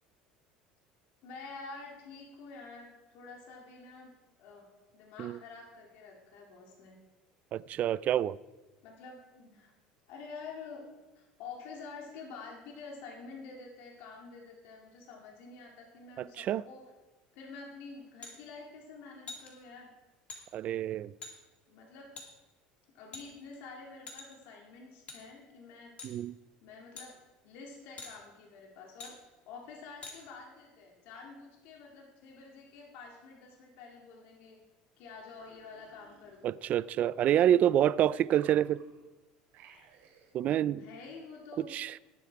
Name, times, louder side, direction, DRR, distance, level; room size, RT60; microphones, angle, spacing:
voice 1, 1.2-4.1 4.4-4.7 4.9-7.0 8.8-9.7 10.1-10.9 11.1-16.9 17.3-19.9 21.7-22.2 22.9-26.0 26.6-27.2 27.4-29.2 29.4-34.6 35.0-36.6 40.8-41.7, left 4 dB, 70° left, 2.4 m, -48 dB
voice 2, 7.5-8.4 16.4-16.6 20.5-21.1 26.0-26.3 36.4-38.8 40.3-40.8 41.6-41.9, right 11 dB, 45° right, 0.4 m, -27 dB
sound 1, 18.2-18.4 19.3-19.5 20.3-20.4 21.2-21.3 22.2-22.3 23.1-23.6 24.1-24.4 25.1-25.2 26.0-26.2 27.0-27.1 28.0-28.1 29.0-29.1 30.0-30.2, left 4 dB, 35° left, 2.7 m, -44 dB
sound 2, 35.2-36.7 37.1-38.0 38.3-39.1 39.5-40.4, right 6 dB, 65° right, 3.0 m, -60 dB
18.5 x 7.0 x 4.8 m
supercardioid pair, 115°, 3 cm